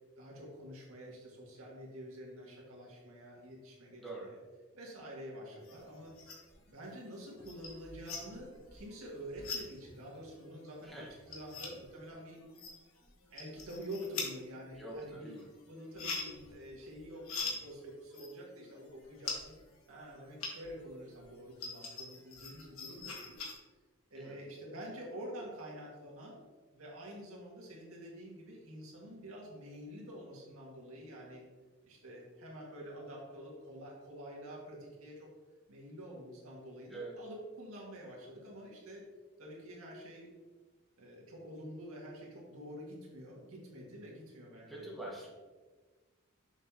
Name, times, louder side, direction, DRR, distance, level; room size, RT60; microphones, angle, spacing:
voice 1, 0.2-4.4 4.7-6.1 6.7-12.4 13.3-15.3 15.6-19.5 19.9-23.4 24.1-26.4 26.7-31.5 31.8-35.3 35.7-39.1 39.4-40.3 41.0-44.9, equal, 80° right, -3 dB, 1.9 m, -48 dB
voice 2, 4.0-4.3 10.8-11.1 14.8-15.4 24.1-24.4 36.9-37.1 44.7-45.3, right 2 dB, ahead, -4 dB, 1.1 m, -44 dB
sound 1, 5.6-6.6 6.9-20.9 21.2-23.5, left 4 dB, 80° left, 1.3 m, -44 dB
7.0 x 6.0 x 2.9 m, 1.3 s
head